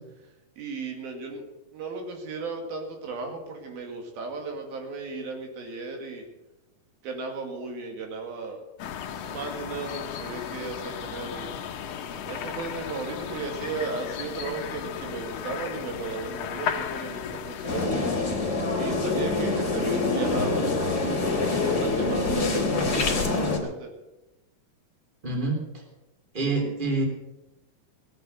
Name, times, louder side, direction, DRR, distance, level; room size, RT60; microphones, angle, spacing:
voice 1, 0.6-1.5 1.7-6.3 7.0-8.6 9.3-11.5 12.3-18.1 18.8-23.9, right 3 dB, 80° right, 2 dB, 4.0 m, -35 dB
sound 1, 8.8-17.9, left 8 dB, 75° left, 1.5 m, -35 dB
sound 2, 17.7-23.6, left 3 dB, 30° left, 3.1 m, -25 dB
voice 2, 25.2-25.8 26.3-27.0, right 3 dB, 15° right, 0 dB, 3.1 m, -27 dB
17.5 x 8.6 x 7.9 m, 0.98 s
omnidirectional pair, 4.2 m